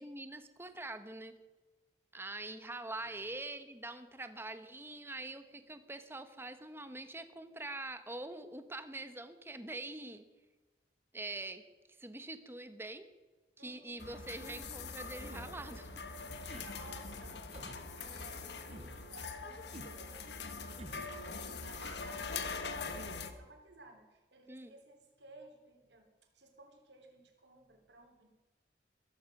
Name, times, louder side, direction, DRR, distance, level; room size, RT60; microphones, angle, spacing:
voice 1, 0.0-1.3 2.1-10.2 11.1-11.6 12.0-13.1 13.6-15.9 24.5-24.7, right 2 dB, 15° right, 9 dB, 1.1 m, -44 dB
voice 2, 13.6-14.0 16.6-26.1 26.3-28.3, right 2 dB, 80° right, 4 dB, 3.3 m, -57 dB
sound 1, 14.0-23.3, left 4 dB, 75° left, 1.4 m, -43 dB
sound 2, 15.3-15.6 16.4-16.7 17.5-17.8 18.7-19.0 19.7-20.0 20.8-21.2, right 2 dB, 35° right, 0.7 m, -51 dB
14.5 x 14.5 x 6.0 m, 1.2 s
head